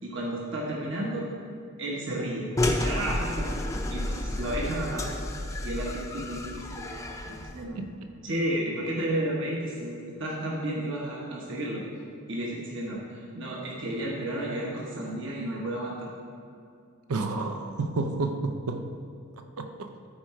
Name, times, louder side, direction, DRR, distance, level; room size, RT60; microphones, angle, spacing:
voice 1, 0.0-1.3 1.8-3.5 3.9-5.1 5.6-7.8 8.2-11.8 12.3-16.1, right 1 dB, 55° right, 1.2 m, -32 dB
sound 1, 2.6-7.6, left 1 dB, 15° left, 0.5 m, -31 dB
voice 2, 17.1-18.9 19.4-19.9, right 3 dB, 85° right, 0.5 m, -31 dB
14.0 x 4.7 x 4.3 m
head